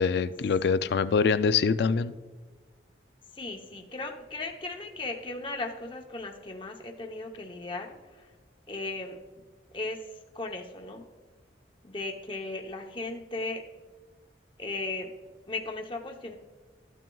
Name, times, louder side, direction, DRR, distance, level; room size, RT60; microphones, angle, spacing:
voice 1, 0.0-2.1, left 5 dB, 60° left, 13 dB, 0.3 m, -24 dB
voice 2, 3.3-8.3 8.7-9.2 9.7-10.0 10.3-11.0 11.8-13.6 14.6-15.1 15.5-16.3, left 2 dB, 25° left, 2 dB, 0.8 m, -36 dB
13.5 x 9.1 x 2.3 m, 1.3 s
head